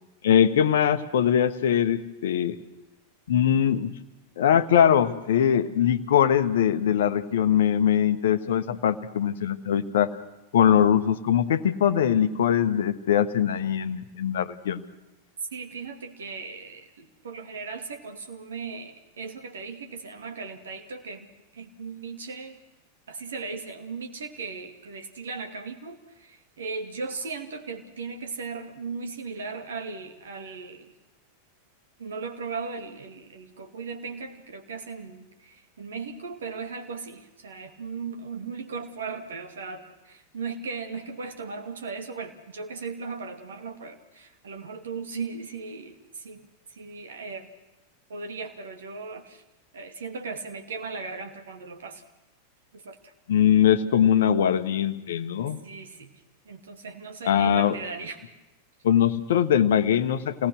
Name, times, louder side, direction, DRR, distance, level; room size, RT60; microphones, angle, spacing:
voice 1, 0.2-2.6 3.3-3.9 4.4-10.2 10.5-14.8 53.3-55.6 57.2-57.8 58.8-60.5, left 9 dB, 60° left, 12 dB, 1.2 m, -22 dB
voice 2, 15.5-21.3 21.5-22.6 23.1-30.9 32.0-46.5 46.7-47.5 48.1-49.4 49.7-52.0 52.7-53.1 55.6-56.2 56.5-58.2, right 4 dB, 65° right, 6 dB, 2.7 m, -37 dB
27.5 x 19.0 x 6.3 m, 1.0 s
figure-of-eight pair, 90°, 0 cm